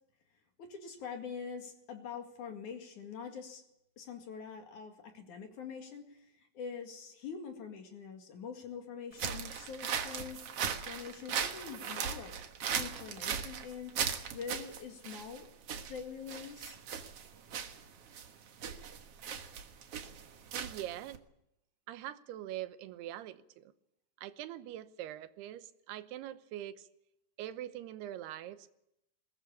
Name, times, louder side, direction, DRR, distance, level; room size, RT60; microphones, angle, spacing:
voice 1, 0.6-3.6 4.0-10.4 10.9-12.4 12.8-15.5 15.9-16.8, left 6 dB, 55° left, 3.3 m, -44 dB
sound 1, 9.1-21.2, right 7 dB, 55° right, 1.7 m, -38 dB
voice 2, 20.5-21.2 21.9-23.7 24.2-26.9 27.4-28.7, right 13 dB, 85° right, 3.0 m, -43 dB
21.0 x 18.5 x 8.4 m
omnidirectional pair, 4.5 m